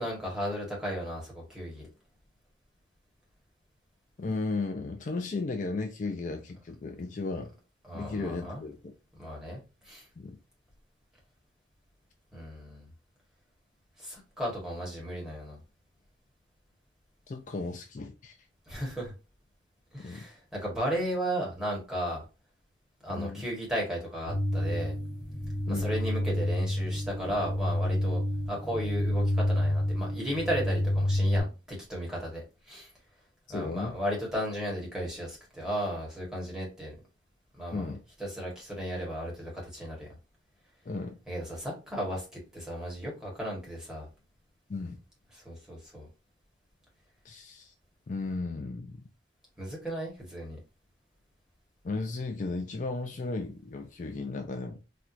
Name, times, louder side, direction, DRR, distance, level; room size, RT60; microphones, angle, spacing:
voice 1, 0.0-1.9 7.8-8.6 9.2-10.1 12.3-12.9 14.0-15.6 18.7-19.1 19.9-22.2 23.0-24.9 25.7-32.9 33.5-36.9 37.5-37.9 38.2-40.1 41.3-44.1 45.3-46.1 49.6-50.6, equal, 5° right, 1.3 m, -35 dB
voice 2, 4.2-7.5 7.9-8.9 10.2-10.4 17.3-18.4 20.0-20.2 23.1-23.4 25.7-26.0 33.5-34.0 37.7-38.0 40.9-41.2 44.7-45.0 47.2-47.7 48.1-49.0 51.8-54.8, left 3 dB, 45° left, 0.4 m, -35 dB
sound 1, 24.3-31.4, left 1 dB, 70° left, 1.1 m, -29 dB
4.3 x 2.3 x 2.5 m
head